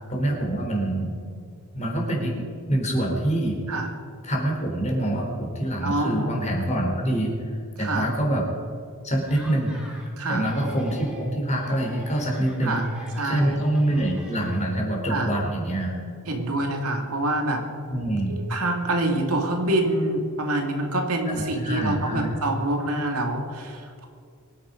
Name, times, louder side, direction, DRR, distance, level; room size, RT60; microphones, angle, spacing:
voice 1, 0.1-1.1 1.7-3.6 4.2-8.4 9.0-9.7 10.3-12.8 13.2-15.9 17.9-18.3 21.3-22.4, right 1 dB, 30° left, 0 dB, 3.7 m, -25 dB
voice 2, 5.8-6.3 7.8-8.1 10.2-10.5 12.6-12.9 13.1-13.6 15.1-15.3 16.3-17.6 18.5-24.1, right 1 dB, 80° right, 2 dB, 2.5 m, -26 dB
Laughter, 9.2-10.1 10.4-11.3 11.6-14.9, equal, 5° right, 3.7 m, -46 dB
24.0 x 10.0 x 5.2 m, 2.3 s
head